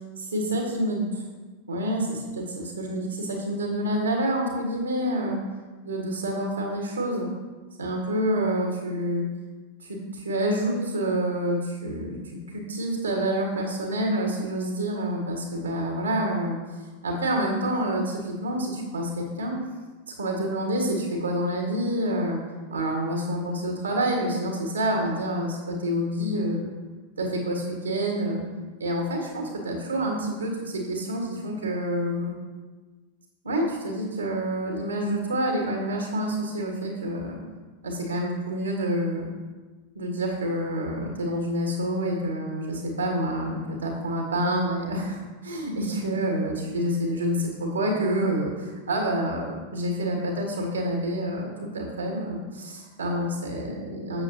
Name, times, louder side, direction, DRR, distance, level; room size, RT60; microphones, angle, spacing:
voice 1, 0.2-1.2 1.7-5.4 5.8-7.3 7.8-9.3 9.8-12.2 12.5-16.6 17.0-19.6 20.2-22.4 22.7-26.7 27.2-28.4 28.8-32.3 33.4-37.4 37.8-39.3 40.0-54.2, right 1 dB, 75° right, 0 dB, 1.6 m, -28 dB
8.6 x 7.2 x 2.9 m, 1.3 s
figure-of-eight pair, 90°, 0 cm